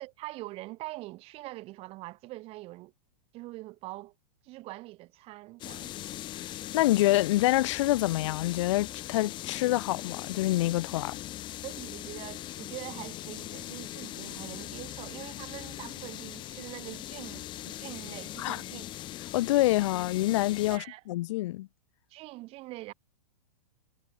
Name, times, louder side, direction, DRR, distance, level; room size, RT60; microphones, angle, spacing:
voice 1, 0.0-2.9 3.3-4.1 4.4-5.9 11.6-18.9 20.7-21.0 22.1-22.9, right 19 dB, 30° right, 4.0 m, -43 dB
sound 1, 5.6-20.8, left 14 dB, 20° left, 1.9 m, -40 dB
voice 2, 6.7-11.2 18.4-18.6 19.3-21.7, left 17 dB, 45° left, 0.5 m, -26 dB
hypercardioid pair, 160°, 21 cm